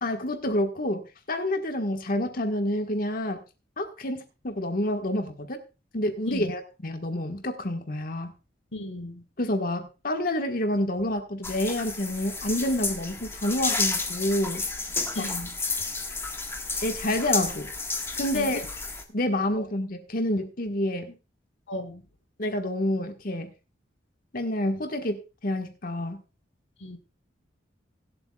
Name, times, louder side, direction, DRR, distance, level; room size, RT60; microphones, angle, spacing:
voice 1, 0.0-3.4 3.8-5.6 5.9-8.3 9.4-14.6 15.2-15.3 16.8-17.7 18.2-18.6 19.1-21.1 22.4-23.5 24.3-26.2, left 1 dB, 50° left, 1.5 m, -28 dB
voice 2, 8.7-9.2 15.1-15.5 18.3-18.6 21.7-22.0 26.8-27.0, left 1 dB, 75° left, 1.4 m, -35 dB
sound 1, 11.4-19.0, left 3 dB, 15° left, 1.5 m, -31 dB
24.0 x 8.1 x 2.4 m
head